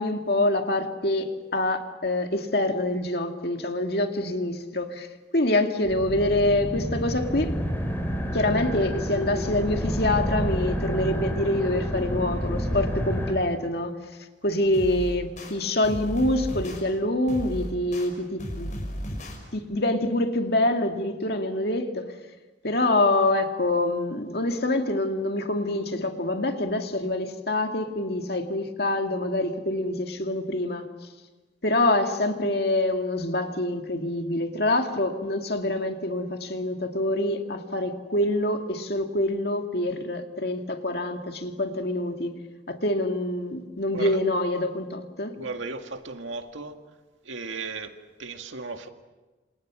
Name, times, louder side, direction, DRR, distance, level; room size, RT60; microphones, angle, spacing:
voice 1, 0.0-5.1 5.3-7.5 8.3-14.0 14.4-18.7 19.5-22.1 22.6-30.9 31.6-42.4 42.7-45.3, left 1 dB, 55° left, 2.2 m, -26 dB
sound 1, 5.8-13.3, equal, 10° left, 3.8 m, -29 dB
sound 2, 14.7-15.5 15.8-16.8 17.3-18.1 18.4-19.4, equal, 40° left, 6.1 m, -34 dB
voice 2, 45.4-46.8 47.2-48.9, right 3 dB, 85° right, 2.0 m, -36 dB
28.5 x 27.5 x 6.2 m
head